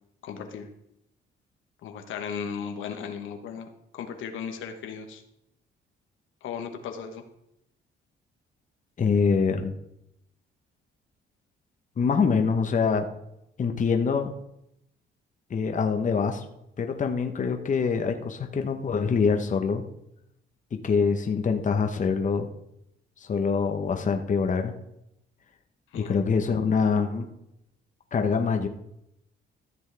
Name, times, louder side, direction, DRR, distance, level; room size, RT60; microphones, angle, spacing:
voice 1, 0.2-0.7 1.8-3.7 3.9-5.2 6.4-7.2 25.9-26.2, left 7 dB, 80° left, 5 dB, 1.2 m, -36 dB
voice 2, 9.0-9.7 12.0-13.1 13.6-14.3 15.5-16.4 16.8-19.8 20.7-22.5 23.2-24.7 25.9-27.3 28.1-28.7, left 5 dB, 40° left, 5 dB, 1.0 m, -25 dB
14.0 x 7.3 x 3.4 m, 0.80 s
cardioid pair, 90°, 20 cm